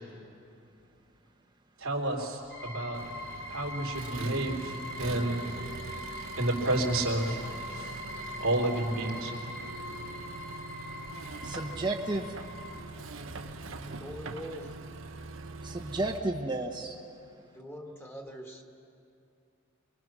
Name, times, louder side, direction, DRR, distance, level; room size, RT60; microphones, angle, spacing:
voice 1, 1.8-3.0 3.5-5.5 6.4-7.4 7.7-8.0 8.4-9.3, right 1 dB, 90° right, -1 dB, 3.3 m, -30 dB
sound 1, 2.5-12.8, left 1 dB, 55° left, 2.0 m, -42 dB
Accelerating revving vroom, 2.9-16.2, right 3 dB, 65° right, 0.9 m, -43 dB
voice 2, 11.4-12.3 15.6-17.0, right 2 dB, 20° right, 1 dB, 1.0 m, -32 dB
voice 3, 13.9-14.8 17.5-18.6, equal, 10° left, 2 dB, 1.7 m, -43 dB
25.5 x 22.0 x 6.2 m, 2.6 s
head